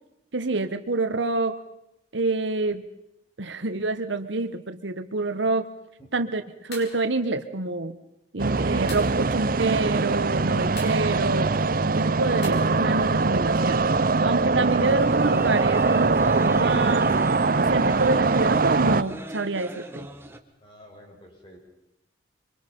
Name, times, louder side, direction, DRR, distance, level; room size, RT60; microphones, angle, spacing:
voice 1, 0.3-1.6 2.1-2.8 3.4-5.7 6.1-8.0 8.3-11.5 11.9-13.9 14.2-17.2 17.7-20.1, right 3 dB, 90° right, 10 dB, 1.3 m, -27 dB
sound 1, 6.7-7.0 8.9-9.2 10.8-11.1 12.4-12.5, left 2 dB, 65° left, 6.1 m, -39 dB
sound 2, 8.4-19.0, right 3 dB, 50° right, 0.7 m, -22 dB
sound 3, 14.6-20.4, right 1 dB, 15° right, 1.5 m, -39 dB
voice 2, 20.6-21.6, equal, 30° left, 0 dB, 6.6 m, -49 dB
25.5 x 24.5 x 5.4 m, 0.84 s
head